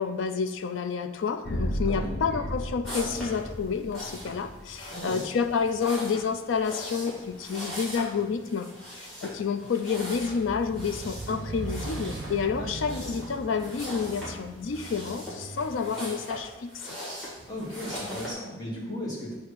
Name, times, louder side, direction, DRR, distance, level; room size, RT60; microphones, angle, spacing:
voice 1, 0.0-16.7, left 5 dB, 85° left, 9 dB, 0.4 m, -29 dB
sound 1, 1.4-5.4, equal, 65° left, 0.9 m, -34 dB
sound 2, 2.8-18.3, equal, 5° left, 2.2 m, -41 dB
voice 2, 4.9-5.2 12.6-12.7 13.0-13.1 17.5-19.3, left 1 dB, 20° left, -7 dB, 2.0 m, -36 dB
sound 3, 9.9-16.4, right 3 dB, 65° right, 0.5 m, -40 dB
8.3 x 2.8 x 6.0 m, 1.1 s
head